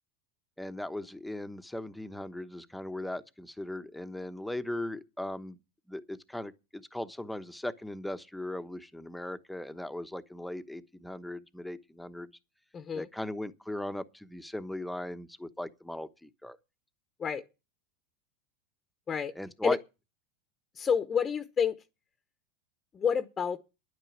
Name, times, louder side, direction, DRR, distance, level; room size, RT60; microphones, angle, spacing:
voice 1, 0.6-5.6 5.9-12.3 12.9-16.6 19.4-19.8, left 1 dB, 5° left, 1.0 m, -38 dB
voice 2, 12.7-13.1 17.2-17.4 19.1-19.3 19.6-19.8 20.7-21.8 22.9-23.6, left 7 dB, 25° left, 1.0 m, -29 dB
10.5 x 9.2 x 7.2 m
hypercardioid pair, 110°, 0 cm